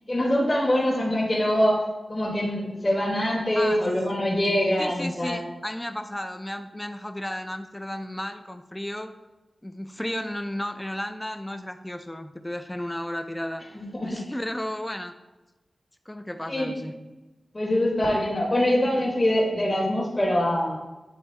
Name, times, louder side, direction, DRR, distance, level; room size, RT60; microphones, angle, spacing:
voice 1, 0.1-1.8 2.1-5.4 13.7-14.2 16.5-16.7 17.5-20.8, left 1 dB, 25° left, -3 dB, 1.0 m, -24 dB
voice 2, 4.8-9.1 9.6-13.6 14.0-15.1 16.1-17.0, left 1 dB, 10° left, 9 dB, 0.4 m, -33 dB
9.0 x 3.5 x 3.2 m, 1.1 s
wide cardioid pair, 125°, 0 cm